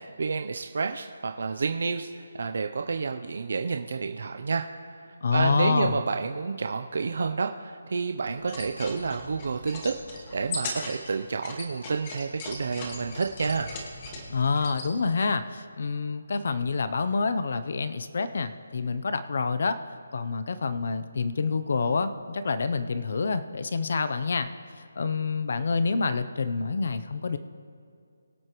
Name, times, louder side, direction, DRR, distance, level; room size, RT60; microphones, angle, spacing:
voice 1, 0.0-4.7 5.0-13.7, right 4 dB, 45° right, 5 dB, 0.5 m, -30 dB
voice 2, 5.2-6.0 14.3-19.8 20.1-24.5 24.8-27.4, left 4 dB, 40° left, 11 dB, 0.6 m, -27 dB
sound 1, 8.4-14.9, left 2 dB, 15° left, 1.1 m, -39 dB
22.5 x 7.9 x 3.0 m, 2.4 s
hypercardioid pair, 180°, 0 cm